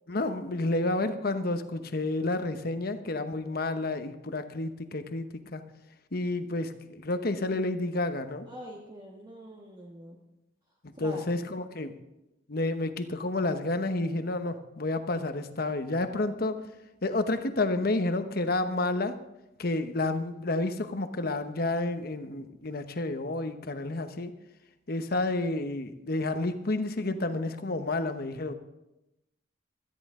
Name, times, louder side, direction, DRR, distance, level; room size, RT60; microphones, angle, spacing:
voice 1, 0.1-5.6 6.1-8.5 10.8-12.0 12.5-16.6 17.0-19.2 19.6-24.3 24.9-28.5, left 2 dB, 55° left, 9 dB, 1.0 m, -30 dB
voice 2, 8.4-10.2 11.0-11.4, equal, 25° right, -2 dB, 1.4 m, -44 dB
17.0 x 13.0 x 3.7 m, 0.94 s
head